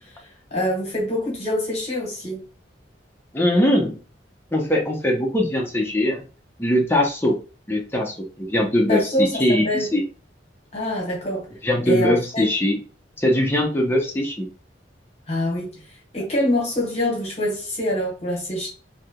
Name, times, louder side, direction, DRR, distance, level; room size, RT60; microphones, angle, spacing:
voice 1, 0.5-2.4 8.9-9.9 10.7-11.5 11.8-12.5 15.3-15.7 16.1-18.7, left 1 dB, 35° left, 1.2 m, -25 dB
voice 2, 3.3-4.0 4.5-6.2 6.6-7.4 7.7-10.0 11.6-12.8 13.2-14.5, left 1 dB, 15° left, 0.7 m, -21 dB
3.2 x 2.7 x 2.3 m
head